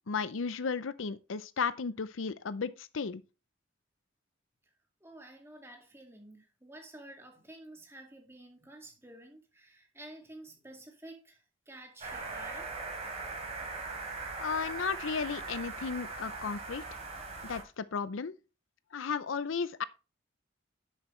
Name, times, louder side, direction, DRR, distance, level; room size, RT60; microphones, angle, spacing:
voice 1, 0.1-3.2 14.4-16.8 17.4-18.4 18.9-19.8, left 5 dB, 75° left, 0.6 m, -34 dB
voice 2, 5.0-12.7, right 1 dB, 15° right, 2.2 m, -51 dB
sound 1, 12.0-17.6, right 3 dB, 35° right, 3.4 m, -40 dB
10.5 x 7.9 x 3.2 m
head